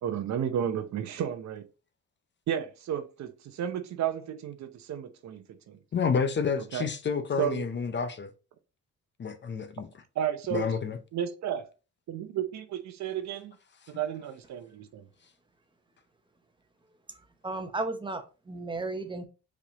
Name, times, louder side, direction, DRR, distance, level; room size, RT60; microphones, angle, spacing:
voice 1, 0.0-1.7 2.5-5.8 6.7-6.9 7.4-7.7 10.2-10.7 11.1-11.6 12.1-13.5 13.9-15.1, right 9 dB, 65° right, 0.7 m, -32 dB
voice 2, 5.9-8.3 9.2-9.9 10.5-11.0, left 6 dB, 40° left, 0.6 m, -29 dB
voice 3, 17.4-19.3, right 2 dB, 15° right, 0.9 m, -34 dB
4.9 x 3.5 x 2.8 m
cardioid pair, 90°, 30 cm